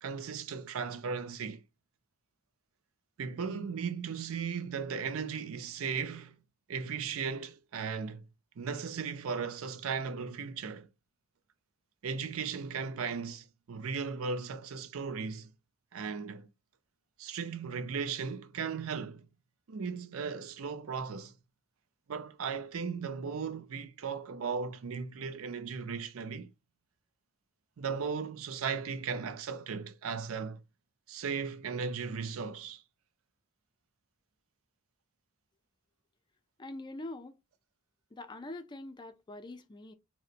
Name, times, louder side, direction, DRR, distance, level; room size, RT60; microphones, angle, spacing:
voice 1, 0.0-1.6 3.2-6.4 6.7-8.3 8.6-10.9 12.0-15.5 15.9-16.5 17.2-19.3 19.7-21.4 22.1-26.5 27.8-30.6 31.1-32.8, right 5 dB, 85° right, 0.5 m, -36 dB
voice 2, 36.6-37.4 38.1-39.9, left 2 dB, 20° left, 0.4 m, -44 dB
3.9 x 2.1 x 2.5 m
head